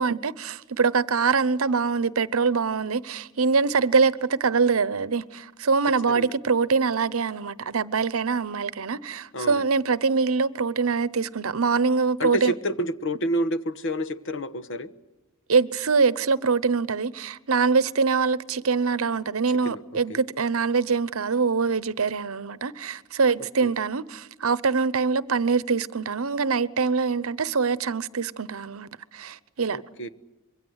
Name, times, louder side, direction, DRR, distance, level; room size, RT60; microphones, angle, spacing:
voice 1, 0.0-12.5 15.5-28.9 29.1-29.8, right 5 dB, 75° right, 0.8 m, -24 dB
voice 2, 6.0-6.3 9.3-9.7 12.2-14.9 19.6-19.8 20.1-20.2 23.4-23.7 29.7-30.1, equal, 60° left, 1.2 m, -29 dB
26.0 x 23.0 x 8.1 m
head